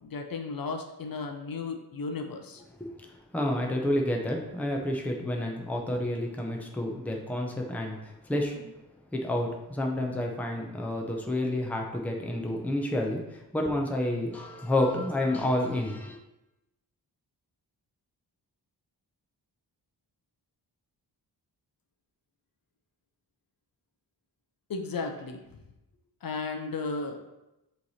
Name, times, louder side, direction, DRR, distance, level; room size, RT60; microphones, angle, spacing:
voice 1, 0.0-2.6 24.7-25.4 26.2-27.2, left 4 dB, 55° left, 4 dB, 0.7 m, -34 dB
voice 2, 3.3-8.7 9.1-16.2, left 1 dB, 5° left, 1 dB, 0.6 m, -29 dB
7.5 x 3.2 x 4.1 m, 0.96 s
wide cardioid pair, 180°, 41 cm